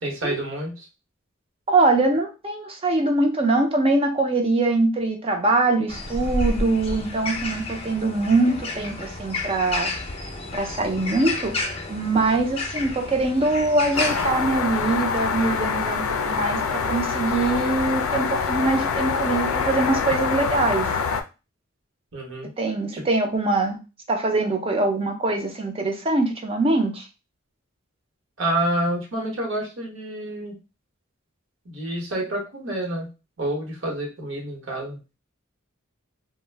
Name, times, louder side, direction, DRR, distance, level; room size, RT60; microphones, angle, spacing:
voice 1, 0.0-0.9 22.1-22.5 22.9-23.0 28.4-30.5 31.6-33.1 33.4-35.0, right 1 dB, 65° right, 0 dB, 1.0 m, -28 dB
voice 2, 1.7-9.9 10.5-11.5 11.9-20.9 22.6-23.8 24.1-27.1, right 2 dB, 30° right, 3 dB, 0.5 m, -23 dB
sound 1, 5.9-14.3, left 2 dB, 30° left, 0.5 m, -30 dB
sound 2, 13.9-21.2, left 5 dB, 90° left, 0.4 m, -25 dB
2.4 x 2.1 x 3.3 m, 0.30 s
head